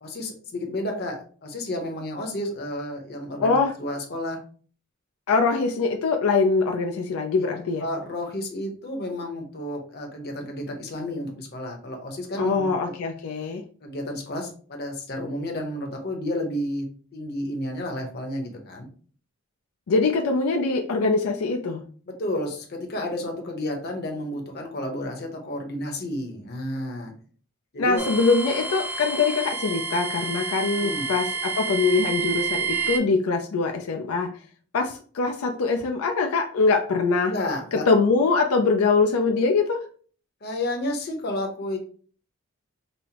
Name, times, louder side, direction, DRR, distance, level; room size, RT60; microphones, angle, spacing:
voice 1, 0.0-4.4 7.8-12.7 13.8-16.9 17.1-18.9 22.1-27.1 27.7-28.0 30.8-31.1 37.2-37.8 40.4-41.8, left 1 dB, 50° left, 2 dB, 0.9 m, -31 dB
voice 2, 3.4-3.7 5.3-7.8 12.4-13.6 19.9-21.8 27.8-34.3 34.7-37.3 37.7-39.8, left 4 dB, 80° left, 4 dB, 0.4 m, -23 dB
sound 1, 28.0-33.0, right 5 dB, 10° right, 0.4 m, -29 dB
5.3 x 2.0 x 2.8 m, 0.43 s
head